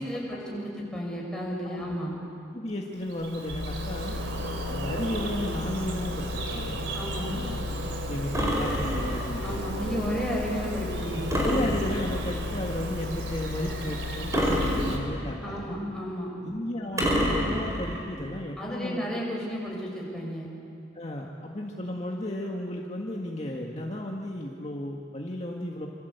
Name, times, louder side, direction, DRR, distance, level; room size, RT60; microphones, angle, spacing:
voice 1, 0.0-2.2 6.9-7.3 9.4-11.3 15.4-16.3 18.6-20.5, equal, 5° left, -3 dB, 6.7 m, -33 dB
voice 2, 1.6-2.0 2.5-4.2 4.7-6.8 7.3-9.6 11.4-15.8 16.4-19.0 20.9-25.9, left 1 dB, 35° left, -1 dB, 1.8 m, -34 dB
Bird vocalization bird call bird song, 2.9-15.0, right 2 dB, 80° right, 3.7 m, -36 dB
sound 1, 3.5-15.2, left 4 dB, 80° left, 0.6 m, -36 dB
sound 2, 8.3-9.4 11.3-12.4 14.3-15.5 17.0-18.0, equal, 15° right, 5.1 m, -27 dB
27.5 x 26.0 x 8.2 m, 2.6 s
head